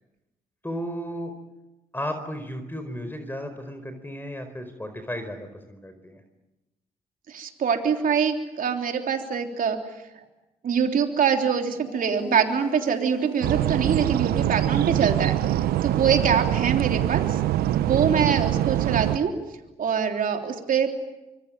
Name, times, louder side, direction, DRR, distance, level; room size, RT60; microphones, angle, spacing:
voice 1, 0.6-1.3 1.9-6.2, equal, 15° left, 8 dB, 4.7 m, -34 dB
voice 2, 7.3-9.8 10.1-10.2 10.6-15.3 15.8-17.4 17.8-19.3 19.8-20.9, right 7 dB, 60° right, 4 dB, 3.5 m, -24 dB
sound 1, 11.7-14.7, left 1 dB, 65° left, 8.0 m, -40 dB
sound 2, 13.4-19.2, right 13 dB, 75° right, 1.0 m, -24 dB
25.5 x 22.5 x 9.1 m, 1.0 s
hypercardioid pair, 45°, 16 cm